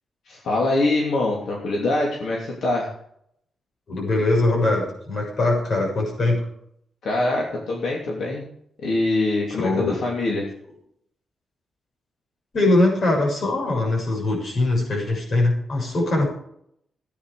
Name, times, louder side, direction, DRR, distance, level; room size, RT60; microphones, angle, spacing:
voice 1, 0.3-2.9 7.0-8.4 8.8-10.5, left 2 dB, 75° left, -2 dB, 3.0 m, -24 dB
voice 2, 3.9-6.5 9.6-10.0 12.5-16.3, left 2 dB, 50° left, 0 dB, 6.8 m, -21 dB
15.5 x 9.6 x 4.9 m, 0.70 s
wide cardioid pair, 125°, 0 cm